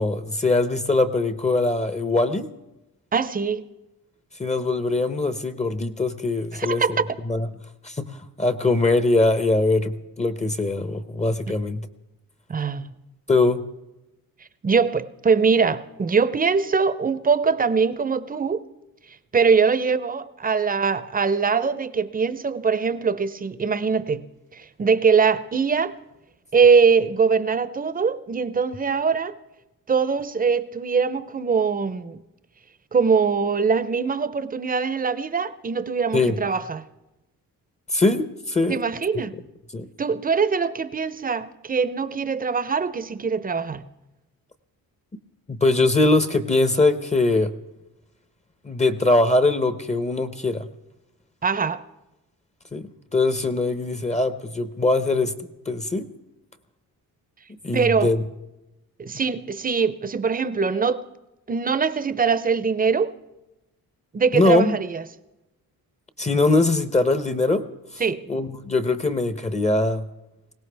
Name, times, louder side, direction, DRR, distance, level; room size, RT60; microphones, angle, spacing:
voice 1, 0.0-2.5 4.4-7.0 7.2-7.5 7.8-11.9 13.3-13.6 36.1-36.4 37.9-38.8 39.7-39.9 45.5-47.5 48.6-50.7 52.7-55.3 55.7-56.1 57.6-58.2 64.3-64.8 66.2-67.6 68.3-70.1, left 2 dB, 20° left, 0.8 m, -22 dB
voice 2, 3.1-3.6 6.5-7.1 12.5-12.9 14.6-18.6 19.3-24.3 24.5-26.0 26.5-29.3 29.9-32.2 32.9-36.8 38.7-39.4 40.0-43.8 51.4-51.8 57.7-58.2 59.0-61.0 61.5-63.1 64.1-65.0 68.0-68.3, right 5 dB, 25° right, 0.7 m, -22 dB
21.0 x 17.5 x 3.4 m
cardioid pair, 135°, 36 cm